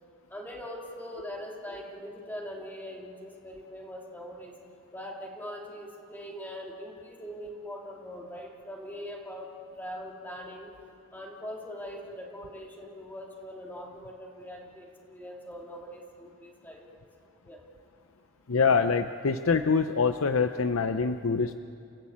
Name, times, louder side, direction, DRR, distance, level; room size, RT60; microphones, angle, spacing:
voice 1, 0.3-4.6 4.9-9.5 9.7-10.7 11.1-17.0 17.4-17.6, equal, 10° left, -1 dB, 2.5 m, -42 dB
voice 2, 18.5-21.5, left 5 dB, 90° left, 9 dB, 0.7 m, -25 dB
29.5 x 14.5 x 8.6 m, 2.6 s
head